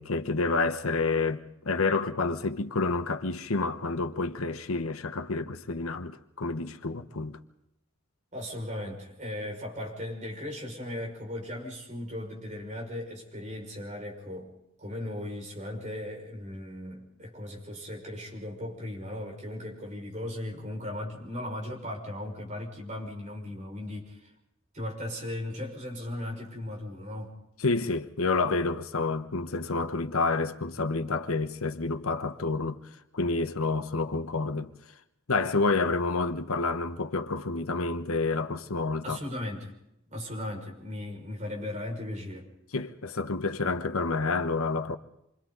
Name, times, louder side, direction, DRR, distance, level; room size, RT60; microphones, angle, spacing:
voice 1, 0.0-7.4 27.6-32.8 33.1-34.7 35.3-39.2 42.7-45.0, left 3 dB, 90° left, 1.1 m, -29 dB
voice 2, 8.3-14.5 14.8-24.3 24.7-27.4 39.0-39.7 40.1-42.5, left 1 dB, 35° right, 5.6 m, -37 dB
28.0 x 24.5 x 4.0 m
head